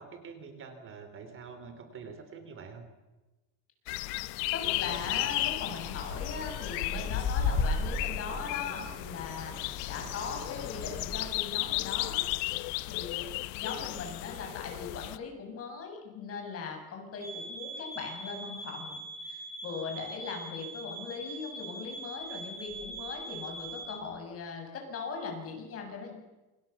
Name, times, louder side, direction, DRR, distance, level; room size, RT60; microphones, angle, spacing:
voice 1, 0.0-2.9, right 5 dB, 30° right, 8 dB, 3.4 m, -46 dB
sound 1, 3.9-15.2, left 20 dB, 85° left, 1.2 m, -35 dB
voice 2, 4.5-12.2 12.9-26.1, left 5 dB, 35° left, 2 dB, 7.4 m, -39 dB
Bird, 4.6-11.3, left 4 dB, 70° left, 7.0 m, -35 dB
sound 2, 17.2-24.0, right 2 dB, 5° right, 6.9 m, -42 dB
28.0 x 26.5 x 7.0 m, 1.1 s
cardioid pair, 160°, 39 cm